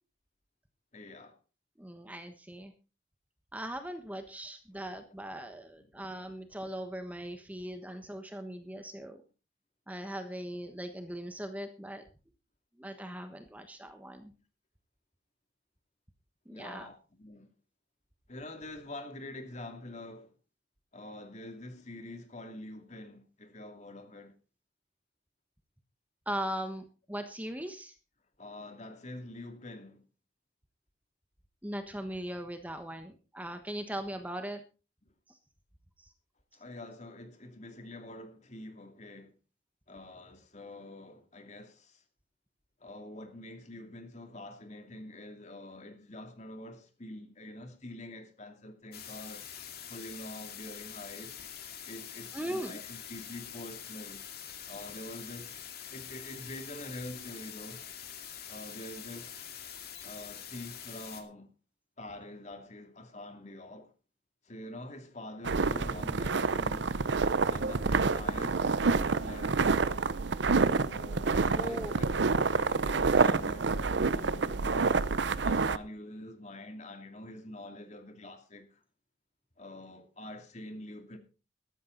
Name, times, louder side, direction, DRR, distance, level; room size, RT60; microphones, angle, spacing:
voice 1, 0.9-1.4 5.9-6.0 16.5-17.5 18.3-20.3 20.9-24.4 28.4-30.0 36.5-39.3 39.9-42.0 42.8-49.5 49.9-51.3 51.8-54.2 54.6-55.5 55.9-57.9 58.5-59.3 60.0-61.5 62.0-63.9 64.4-66.9 67.5-70.1 70.9-75.0 75.4-78.8 79.6-81.2, left 1 dB, 40° left, 2.5 m, -46 dB
voice 2, 1.8-2.7 3.5-9.2 9.9-12.0 12.8-14.3 16.5-16.9 26.3-27.9 31.6-34.6 52.3-52.7 71.5-71.9, right 1 dB, 10° right, 1.2 m, -39 dB
sound 1, 48.9-61.2, left 9 dB, 60° left, 2.3 m, -45 dB
sound 2, 65.4-75.8, right 4 dB, 80° right, 0.7 m, -28 dB
14.0 x 12.5 x 3.9 m
head